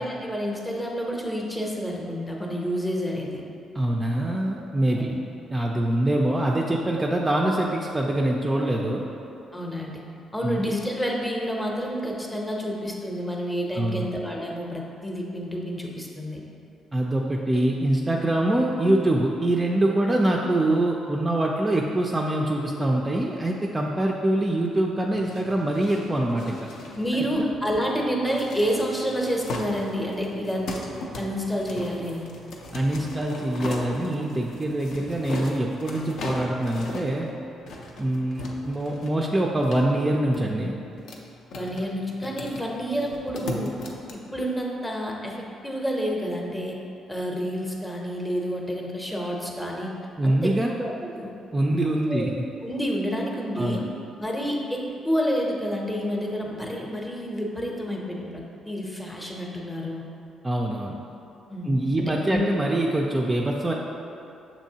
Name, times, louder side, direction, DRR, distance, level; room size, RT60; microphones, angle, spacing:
voice 1, 0.0-3.4 4.9-5.2 9.5-10.0 10.3-16.4 26.9-30.6 31.2-32.3 41.5-43.7 44.1-45.3 45.6-46.8 47.1-49.9 50.2-51.3 52.1-52.3 52.6-53.8 54.2-60.0 61.5-62.5, equal, 10° left, -1 dB, 0.6 m, -29 dB
voice 2, 3.7-5.1 5.5-9.1 10.4-10.6 13.8-14.1 16.9-26.7 27.4-27.5 32.7-37.3 38.0-40.8 50.2-50.7 51.5-52.5 53.6-53.8 60.4-61.0 61.6-63.7, right 1 dB, 20° right, -1 dB, 0.3 m, -24 dB
sound 1, 25.1-44.1, left 2 dB, 75° left, 0.5 m, -38 dB
6.2 x 2.9 x 2.7 m, 2.7 s
cardioid pair, 90°, 0 cm